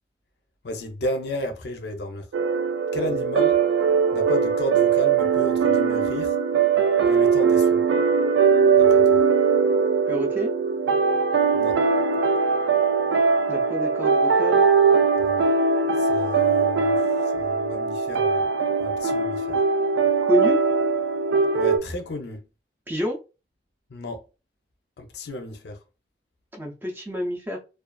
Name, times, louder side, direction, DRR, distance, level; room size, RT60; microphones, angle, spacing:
voice 1, 0.6-2.3 2.9-3.6 4.1-6.4 7.0-7.8 8.7-9.2 11.5-11.8 15.2-15.5 16.0-18.4 18.8-19.6 21.5-22.4 23.9-24.2 25.0-25.8, left 1 dB, 65° left, 0.5 m, -33 dB
sound 1, 2.3-21.8, right 5 dB, 85° right, 0.3 m, -20 dB
voice 2, 10.1-10.5 13.5-14.7 20.2-20.6 22.9-23.2 26.5-27.6, left 1 dB, 10° right, 0.4 m, -28 dB
2.4 x 2.3 x 2.2 m
head